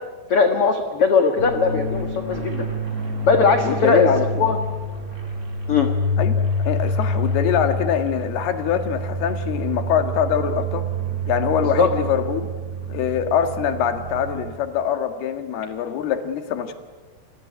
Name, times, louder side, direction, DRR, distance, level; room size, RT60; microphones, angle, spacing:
voice 1, 0.3-2.7 3.3-4.1 4.4-4.6 5.7-5.9 11.8-11.9, left 5 dB, 50° left, 6 dB, 1.8 m, -19 dB
sound 1, 1.4-14.5, equal, 20° right, 4.1 m, -27 dB
voice 2, 3.6-4.6 6.2-10.9 11.3-12.5 12.9-16.7, left 8 dB, 90° left, 8 dB, 3.7 m, -24 dB
28.5 x 21.0 x 9.9 m, 1.4 s
omnidirectional pair, 4.4 m